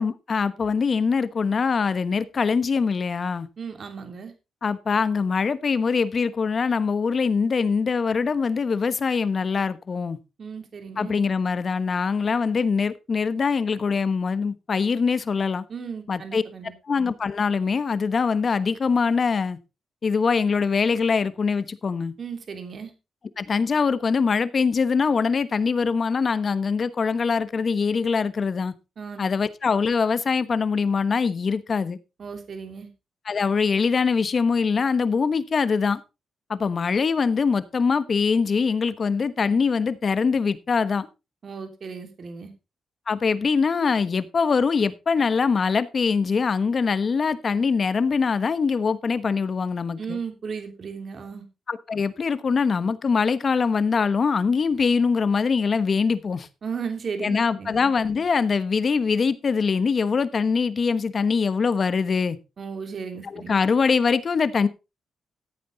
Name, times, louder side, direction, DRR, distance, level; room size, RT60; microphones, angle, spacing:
voice 1, 0.0-3.5 4.6-10.2 11.0-15.6 16.1-16.4 16.9-19.6 20.0-22.1 23.4-28.7 29.2-32.0 33.2-36.0 36.5-41.1 43.1-50.2 51.7-56.5 57.2-62.4 63.2-64.7, left 5 dB, 50° left, 1.1 m, -23 dB
voice 2, 3.6-4.3 10.4-11.1 15.7-16.7 22.2-22.9 29.0-29.2 32.2-32.9 41.4-42.5 50.0-51.4 56.6-57.8 62.6-63.6, right 6 dB, 55° right, 3.1 m, -35 dB
14.5 x 8.6 x 4.0 m
cardioid pair, 75°, 0 cm